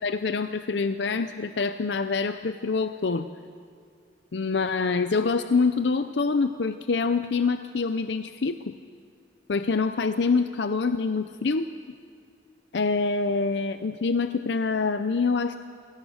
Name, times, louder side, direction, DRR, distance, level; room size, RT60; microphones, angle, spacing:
voice 1, 0.0-3.3 4.3-8.7 9.5-11.7 12.7-15.6, left 4 dB, 65° left, 10 dB, 0.6 m, -25 dB
27.5 x 17.5 x 6.4 m, 2.3 s
head